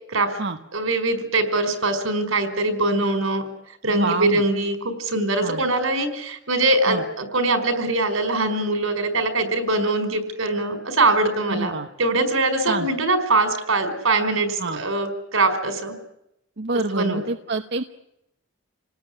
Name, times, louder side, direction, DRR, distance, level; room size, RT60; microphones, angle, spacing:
voice 1, 0.7-3.4 3.8-11.7 12.0-15.9 16.9-17.2, right 2 dB, 85° right, 9 dB, 5.1 m, -22 dB
voice 2, 3.9-4.4 5.4-5.6 6.9-7.0 11.5-11.9 12.7-12.9 14.6-14.8 16.6-17.8, right 3 dB, 55° right, 5 dB, 1.1 m, -27 dB
28.0 x 19.0 x 9.8 m, 0.81 s
head